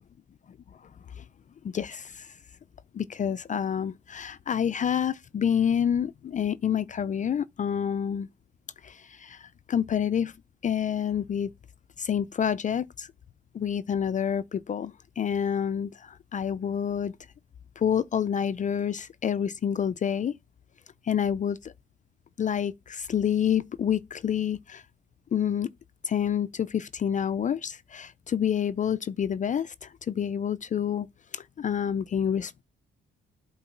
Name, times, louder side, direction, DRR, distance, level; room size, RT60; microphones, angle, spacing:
voice 1, 1.6-2.3 2.9-8.3 8.8-10.3 10.6-11.5 12.0-13.1 13.5-17.1 17.8-20.3 21.0-21.7 22.4-24.8 25.3-25.7 26.0-31.1 31.3-32.6, left 8 dB, 40° left, 0.4 m, -28 dB
8.0 x 3.9 x 5.8 m
cardioid pair, 90°, 20 cm